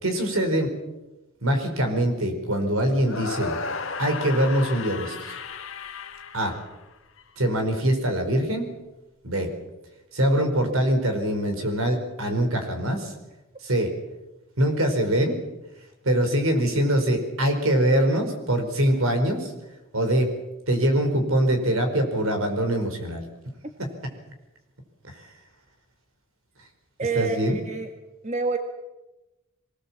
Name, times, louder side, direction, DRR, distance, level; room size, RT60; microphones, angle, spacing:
voice 1, 0.0-0.7 1.4-3.6 4.0-5.3 6.3-6.5 7.4-8.7 9.2-9.5 10.1-13.1 13.6-13.9 14.6-15.4 16.0-19.5 19.9-20.3 20.7-23.2 23.8-23.9 27.1-27.6, right 1 dB, 80° right, 5 dB, 4.8 m, -23 dB
sound 1, 3.0-7.2, left 4 dB, 70° left, 1.8 m, -34 dB
voice 2, 27.0-27.9 28.2-28.6, right 4 dB, 35° right, 5 dB, 1.6 m, -27 dB
23.5 x 19.0 x 7.5 m, 1.0 s
head